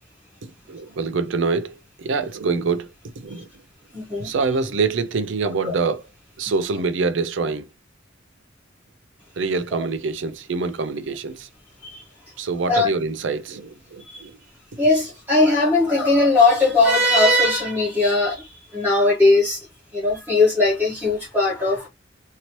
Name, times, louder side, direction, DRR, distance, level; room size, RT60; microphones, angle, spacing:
voice 1, 0.7-2.9 3.2-3.5 4.2-6.0 6.4-7.7 9.4-11.5 12.4-14.3, right 4 dB, 80° right, 0.5 m, -25 dB
voice 2, 3.9-4.3 5.6-5.7 11.8-12.0 12.7-12.9 14.1-14.2 14.8-19.6 19.9-21.9, left 2 dB, 10° right, 1.1 m, -19 dB
2.9 x 2.8 x 3.0 m
head